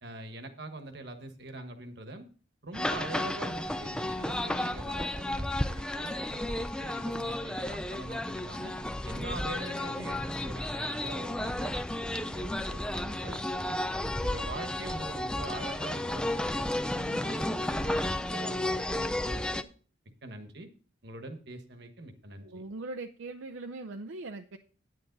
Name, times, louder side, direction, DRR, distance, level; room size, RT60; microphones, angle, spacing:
voice 1, 0.0-2.3 2.6-8.7 9.0-13.8 14.2-19.6 20.2-20.7 21.0-22.6, right 2 dB, 55° right, 7 dB, 1.3 m, -44 dB
sound 1, 2.7-19.6, left 1 dB, 5° left, 0.4 m, -33 dB
voice 2, 22.4-24.6, right 2 dB, 75° right, 4 dB, 0.6 m, -40 dB
9.9 x 9.4 x 3.9 m, 0.40 s
head